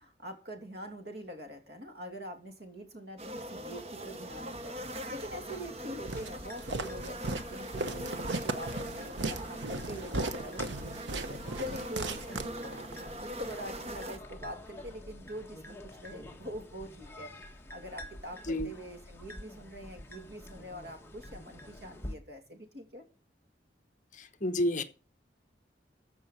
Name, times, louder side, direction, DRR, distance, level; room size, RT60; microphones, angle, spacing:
voice 1, 0.0-12.8 13.2-23.0, equal, 60° right, 2.8 m, -44 dB
sound 1, 3.2-14.2, right 1 dB, 35° right, 1.0 m, -42 dB
sound 2, 6.0-22.2, left 1 dB, 15° left, 1.4 m, -48 dB
Walk footsteps, 6.1-13.0, right 3 dB, 75° right, 1.1 m, -37 dB
voice 2, 24.1-24.8, left 1 dB, 40° left, 1.1 m, -30 dB
14.0 x 5.4 x 7.9 m
head